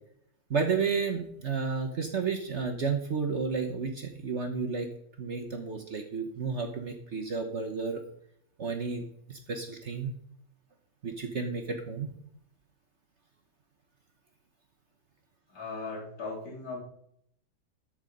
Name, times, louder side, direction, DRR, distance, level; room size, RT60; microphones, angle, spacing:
voice 1, 0.5-4.9 5.2-8.0 8.6-10.1 11.0-12.1, right 5 dB, 50° right, 5 dB, 1.1 m, -32 dB
voice 2, 15.5-16.8, left 3 dB, 60° left, -3 dB, 3.3 m, -38 dB
13.5 x 5.0 x 5.3 m, 0.71 s
omnidirectional pair, 1.8 m